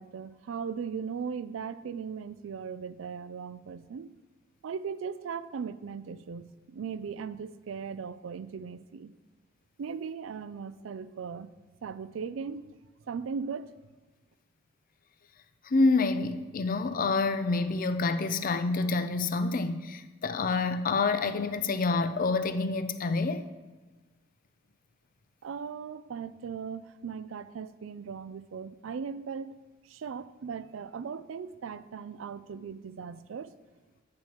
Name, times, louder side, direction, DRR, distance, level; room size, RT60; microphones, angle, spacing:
voice 1, 0.0-4.1 4.6-9.1 9.8-11.5 11.8-12.7 13.1-13.7 25.4-29.6 29.8-33.6, right 6 dB, 90° right, 0.4 m, -38 dB
voice 2, 15.6-23.4, left 3 dB, 45° left, 0.5 m, -27 dB
8.8 x 8.7 x 3.0 m
head